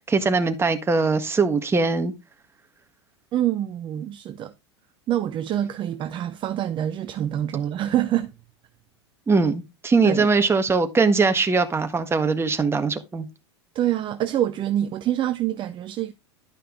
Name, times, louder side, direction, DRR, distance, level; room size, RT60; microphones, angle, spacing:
voice 1, 0.1-2.1 9.3-13.3, right 4 dB, 15° right, 1.5 m, -21 dB
voice 2, 3.3-4.5 5.1-8.3 10.0-10.3 13.7-16.1, right 11 dB, 35° right, 0.7 m, -26 dB
11.5 x 5.5 x 3.7 m
hypercardioid pair, 90°, 15 cm